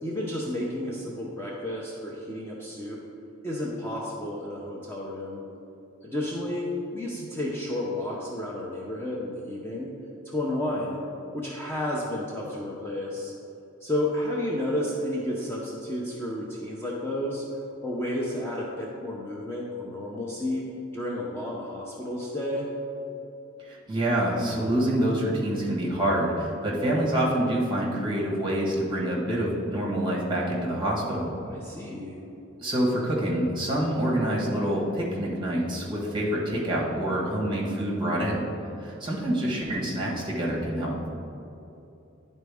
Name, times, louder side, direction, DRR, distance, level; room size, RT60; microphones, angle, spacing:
voice 1, 0.0-3.0 3.4-5.5 6.0-9.9 10.2-11.0 11.3-13.3 13.8-17.4 17.8-20.6 20.9-22.7 31.5-32.2, left 1 dB, 10° left, -5 dB, 0.5 m, -31 dB
voice 2, 23.6-31.3 32.6-38.5 38.8-41.0, right 1 dB, 20° right, -4 dB, 1.3 m, -26 dB
10.5 x 4.1 x 3.5 m, 2.8 s
head